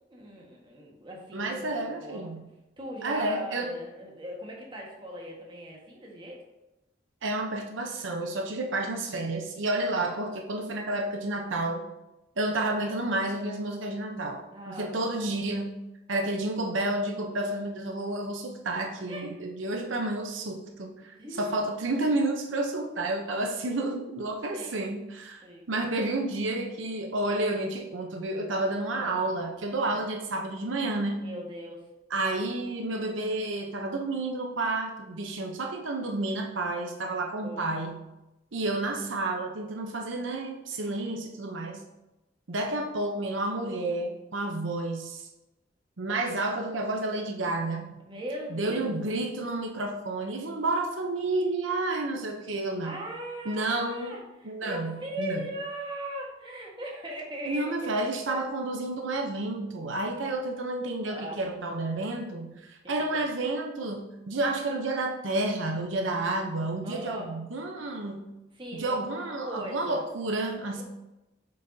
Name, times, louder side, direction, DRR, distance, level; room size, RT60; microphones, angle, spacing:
voice 1, 0.1-1.7 2.0-2.3 2.8-6.4 14.5-14.9 19.1-19.3 21.2-21.5 24.5-24.8 25.4-25.7 28.9-29.3 29.8-30.0 31.2-31.9 37.4-37.9 40.8-41.1 48.0-48.9 52.8-58.4 61.0-61.4 62.8-63.2 66.8-67.3 68.5-70.0 70.7-70.8, right 1 dB, 25° right, -2 dB, 1.5 m, -39 dB
voice 2, 1.3-2.5 3.0-3.7 7.2-11.9 12.4-15.7 16.1-31.2 32.1-38.0 38.5-41.8 42.5-45.3 46.0-47.9 48.5-53.0 53.4-54.2 54.4-55.5 57.5-68.2 68.7-70.8, right 2 dB, 85° right, 2 dB, 0.8 m, -30 dB
7.9 x 5.4 x 2.7 m, 0.96 s
head